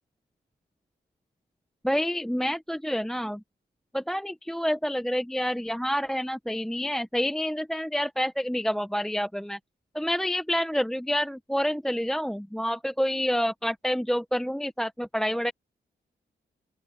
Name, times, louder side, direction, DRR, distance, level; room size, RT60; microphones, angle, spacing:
voice 1, 1.8-3.4 3.9-9.6 9.9-15.5, equal, ahead, 1.2 m, -28 dB
open air
cardioid pair, 95°, 19 cm